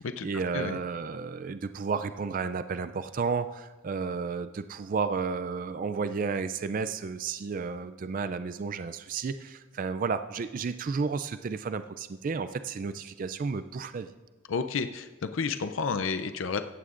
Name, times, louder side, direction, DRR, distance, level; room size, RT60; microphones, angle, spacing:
voice 1, 0.0-14.1, right 5 dB, 40° right, 11 dB, 0.3 m, -32 dB
voice 2, 14.5-16.6, left 5 dB, 65° left, 10 dB, 0.5 m, -31 dB
16.5 x 15.0 x 2.5 m, 1.2 s
head